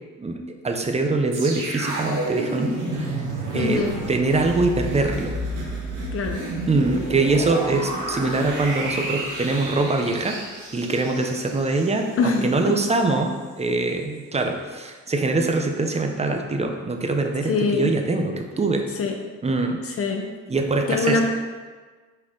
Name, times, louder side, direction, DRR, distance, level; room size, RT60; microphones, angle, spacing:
voice 1, 0.6-3.2 3.5-5.4 6.7-10.4 10.7-18.9 19.4-19.8 20.5-21.2, right 3 dB, 20° right, 4 dB, 0.8 m, -23 dB
sound 1, 1.3-12.5 12.8-13.0, right 1 dB, 85° right, 1.5 m, -30 dB
voice 2, 3.5-4.0 6.1-6.4 12.2-12.8 17.5-17.9 19.0-19.1 19.8-20.3 20.9-21.2, left 4 dB, 50° left, 3 dB, 0.9 m, -24 dB
6.0 x 4.5 x 3.9 m, 1.4 s
cardioid pair, 90°, 30 cm